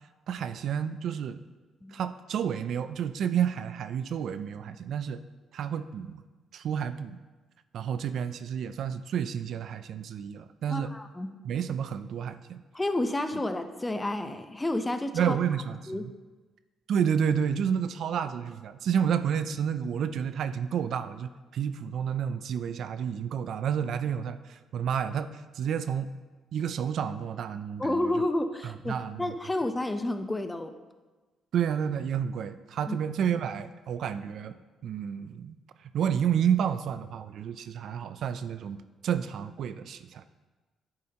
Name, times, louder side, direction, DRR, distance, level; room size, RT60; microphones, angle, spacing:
voice 1, 0.3-1.4 1.9-5.2 5.5-6.2 6.5-7.2 7.7-10.9 11.4-12.6 15.1-16.1 16.9-26.1 26.5-28.2 28.6-29.3 31.5-40.2, right 8 dB, 70° right, 12 dB, 0.4 m, -30 dB
voice 2, 10.7-11.4 12.7-15.4 15.9-16.1 27.8-30.7 32.9-33.0, left 1 dB, 15° left, 8 dB, 0.7 m, -30 dB
10.5 x 8.6 x 2.9 m, 1.3 s
cardioid pair, 90°, 0 cm